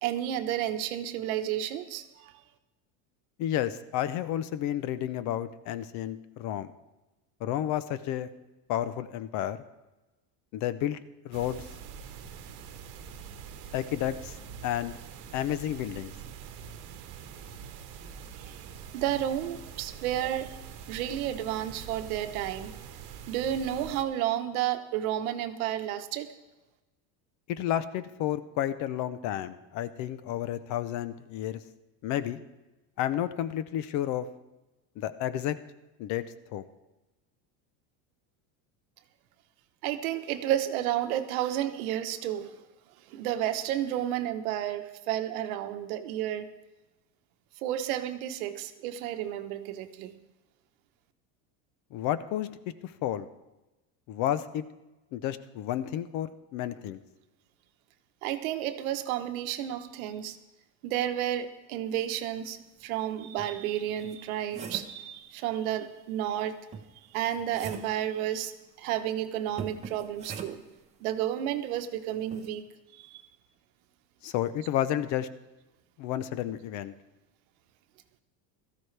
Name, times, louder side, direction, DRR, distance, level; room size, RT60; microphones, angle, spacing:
voice 1, 0.0-2.3 18.4-18.5 18.9-20.5 20.9-22.7 23.3-26.3 39.8-42.5 43.1-46.5 47.6-50.2 58.2-60.4 60.8-66.6 67.1-68.5 68.8-70.6 71.0-72.6 72.9-73.2, right 11 dB, 90° right, 8 dB, 1.2 m, -31 dB
voice 2, 3.4-6.7 7.4-8.3 8.7-9.6 10.5-11.0 11.2-11.6 13.7-14.4 14.6-15.0 15.3-16.1 27.5-31.6 32.0-32.4 33.0-34.3 35.0-35.6 36.0-36.2 36.5-36.7 51.9-52.5 52.8-53.3 54.1-54.6 55.1-57.0 74.2-75.3 76.0-76.9, left 12 dB, 45° left, 14 dB, 0.6 m, -31 dB
sound 1, 11.3-24.0, right 7 dB, 45° right, 1.2 m, -45 dB
sound 2, 62.8-62.9 63.4-65.0 66.7-68.0 69.6-70.8 72.3-72.5, right 6 dB, 15° right, 0.7 m, -42 dB
17.0 x 14.0 x 3.3 m, 1.1 s
cardioid pair, 165°, 41 cm